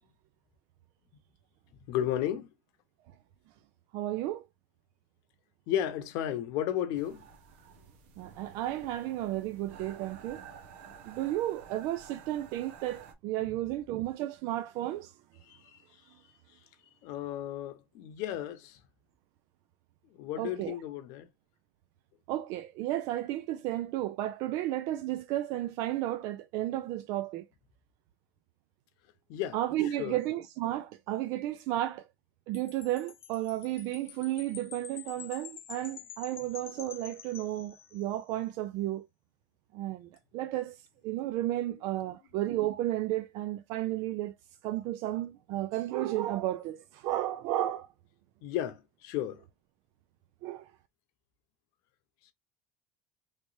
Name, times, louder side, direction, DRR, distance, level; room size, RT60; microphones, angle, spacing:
voice 1, 1.9-2.5 5.7-7.2 13.4-13.5 15.5-15.8 17.0-18.8 20.1-21.3 29.3-29.6 29.8-30.2 48.4-49.4, left 11 dB, 70° left, 0.8 m, -33 dB
voice 2, 3.9-4.4 8.2-10.4 11.1-15.1 20.4-20.8 22.3-27.4 29.5-32.1 32.5-39.1 39.7-40.8 41.0-44.3 44.6-47.9 50.4-50.7, right 14 dB, 70° right, 0.4 m, -33 dB
sound 1, 6.9-13.1, right 6 dB, 85° right, 0.9 m, -51 dB
Wind chime, 32.5-38.2, left 9 dB, 40° left, 0.6 m, -48 dB
3.3 x 3.0 x 2.6 m
supercardioid pair, 115°, 6 cm